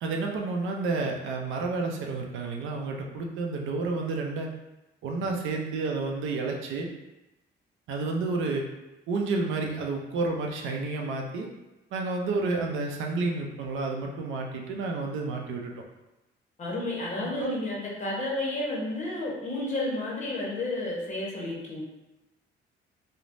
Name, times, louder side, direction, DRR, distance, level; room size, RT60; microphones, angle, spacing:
voice 1, 0.0-4.5 5.0-6.9 7.9-8.6 9.1-11.5 11.9-15.7 17.4-17.6, right 3 dB, 80° right, 1 dB, 0.5 m, -30 dB
voice 2, 16.6-21.8, left 2 dB, 35° left, -3 dB, 0.8 m, -31 dB
3.1 x 2.0 x 2.5 m, 1.0 s
cardioid pair, 90°, 20 cm